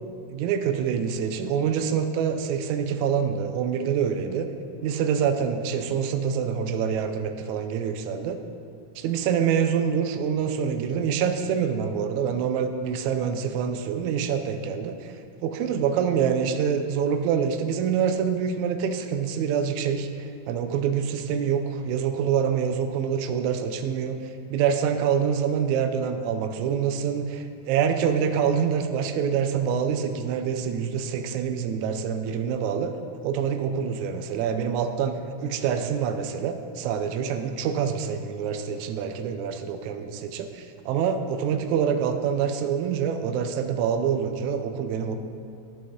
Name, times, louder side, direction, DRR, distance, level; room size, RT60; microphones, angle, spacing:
voice 1, 0.3-4.5 4.8-8.4 9.0-15.1 15.4-24.2 24.5-32.9 33.2-45.2, right 7 dB, 80° right, 7 dB, 1.7 m, -26 dB
13.5 x 6.1 x 3.7 m, 2.3 s
omnidirectional pair, 3.7 m